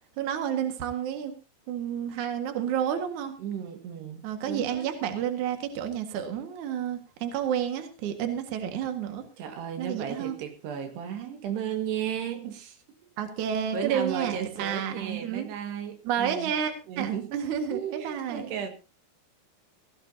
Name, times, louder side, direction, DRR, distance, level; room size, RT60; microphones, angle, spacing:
voice 1, 0.2-1.3 1.7-3.3 4.2-9.2 9.8-10.3 13.2-15.5 16.0-18.6, right 9 dB, 55° right, 2.8 m, -30 dB
voice 2, 3.4-4.9 9.4-12.8 13.7-16.5 16.9-18.7, right 8 dB, 85° right, 3.9 m, -34 dB
19.5 x 16.0 x 2.8 m
omnidirectional pair, 4.7 m